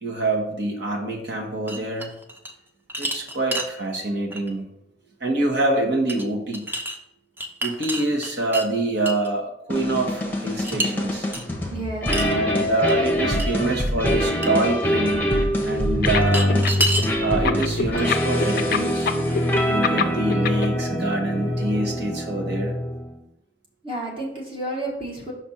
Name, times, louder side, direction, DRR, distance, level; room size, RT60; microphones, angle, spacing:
voice 1, 0.0-2.1 3.0-4.7 5.2-6.7 7.6-11.3 12.1-15.3 15.6-16.6 17.2-19.1 19.7-22.7, right 2 dB, 60° right, 0 dB, 1.4 m, -25 dB
sound 1, 1.7-2.5 2.9-3.7 4.3-4.5 6.1-6.2 6.5-7.0 7.4-8.7 9.1-9.3 10.6-10.9 11.3-11.4 12.1-12.4 12.9-13.0 13.4-13.5 13.9-14.0 14.4-14.5 16.2-17.1 18.0-18.1 18.4-18.9, right 1 dB, 10° right, 0.6 m, -28 dB
sound 2, 9.7-23.2, left 1 dB, 10° left, 0.9 m, -24 dB
voice 2, 11.7-12.3 23.8-25.3, right 1 dB, 30° right, -4 dB, 1.4 m, -31 dB
sound 3, 16.0-17.0 17.3-20.7, left 7 dB, 50° left, 0.4 m, -24 dB
5.9 x 3.4 x 5.7 m, 0.80 s
head